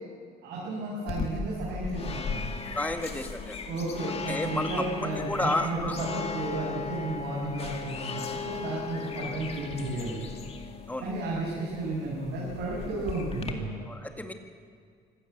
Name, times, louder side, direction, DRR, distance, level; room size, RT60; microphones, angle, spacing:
voice 1, 0.4-2.5 3.6-10.2 11.0-13.7, right 2 dB, 80° right, -6 dB, 7.0 m, -33 dB
sound 1, 1.1-13.5, left 5 dB, 35° left, 2.2 m, -37 dB
voice 2, 2.7-3.6 4.3-6.0 10.9-11.1 13.9-14.3, left 1 dB, 10° left, 6 dB, 2.0 m, -32 dB
24.5 x 16.5 x 8.2 m, 2.1 s
cardioid pair, 110°, 17 cm